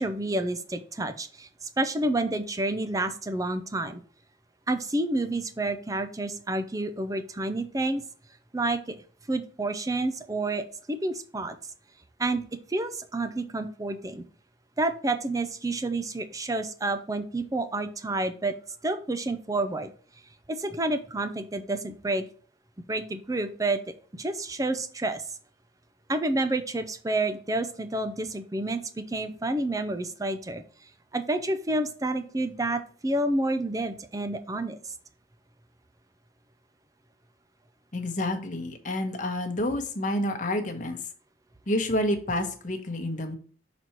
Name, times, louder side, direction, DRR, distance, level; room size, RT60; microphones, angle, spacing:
voice 1, 0.0-4.0 4.7-8.0 8.5-9.0 9.3-11.6 12.2-12.4 12.7-14.2 14.8-18.5 18.8-19.9 20.5-22.2 22.9-23.8 24.1-25.2 26.1-30.6 31.1-34.9, right 2 dB, 20° right, 10 dB, 0.6 m, -29 dB
voice 2, 37.9-41.0 41.7-43.4, left 1 dB, 45° left, 4 dB, 1.1 m, -29 dB
6.2 x 4.2 x 4.5 m, 0.43 s
head